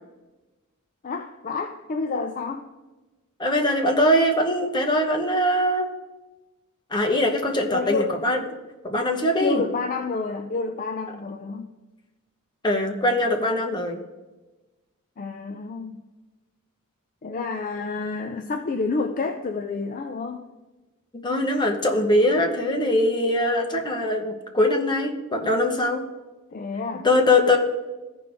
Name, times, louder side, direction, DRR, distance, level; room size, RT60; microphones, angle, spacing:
voice 1, 1.0-2.7 7.7-8.2 9.4-11.7 15.2-16.0 17.2-20.4 26.5-27.1, left 4 dB, 40° left, 6 dB, 0.4 m, -29 dB
voice 2, 3.4-5.9 6.9-8.4 8.8-9.6 12.6-14.0 21.1-26.1 27.0-27.6, left 1 dB, 20° left, 2 dB, 1.0 m, -22 dB
14.5 x 5.1 x 3.4 m, 1.1 s
head